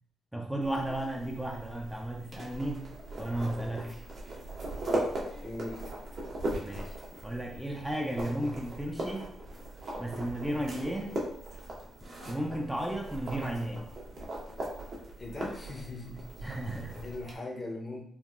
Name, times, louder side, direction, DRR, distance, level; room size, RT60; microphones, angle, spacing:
voice 1, 0.3-2.9 3.2-4.0 6.6-7.0 7.2-9.3 10.0-11.2 12.3-13.9 16.4-17.0, right 1 dB, 5° right, 0 dB, 0.4 m, -34 dB
sound 1, 0.6-17.4, right 1 dB, 55° right, 0.9 m, -39 dB
voice 2, 5.4-5.9 15.2-16.6 17.0-18.0, left 2 dB, 35° left, 1 dB, 0.7 m, -40 dB
3.5 x 2.1 x 2.4 m, 0.68 s
cardioid pair, 80°, 0 cm